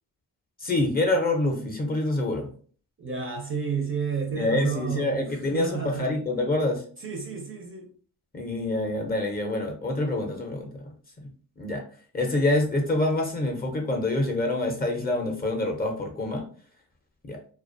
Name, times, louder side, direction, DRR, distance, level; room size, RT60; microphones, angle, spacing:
voice 1, 0.6-2.5 4.3-6.8 8.3-11.3 11.6-11.8 12.1-16.4 17.2-17.4, left 2 dB, 25° left, 0.5 m, -26 dB
voice 2, 3.0-6.2 7.0-7.9, right 6 dB, 30° right, 0.4 m, -31 dB
2.3 x 2.2 x 2.5 m
cardioid pair, 100°, 41 cm